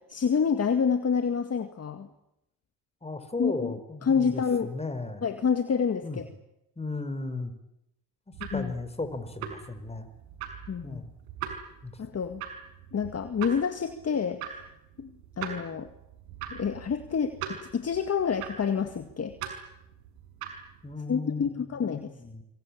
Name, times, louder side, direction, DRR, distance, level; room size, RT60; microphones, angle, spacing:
voice 1, 0.1-2.1 3.4-3.7 4.0-4.7 5.2-6.2 8.5-8.7 10.7-11.0 12.0-12.4 12.9-14.6 15.0-15.9 16.5-19.4 21.1-22.1, left 6 dB, 35° left, 8 dB, 2.1 m, -28 dB
voice 2, 3.0-5.3 6.0-6.2 6.8-7.5 8.5-10.1 10.8-11.1 11.8-12.0 20.8-22.4, left 3 dB, 15° left, 9 dB, 5.0 m, -35 dB
sound 1, 8.3-20.9, right 8 dB, 80° right, 5.7 m, -42 dB
26.5 x 24.5 x 8.8 m, 0.84 s
supercardioid pair, 85°, 45 cm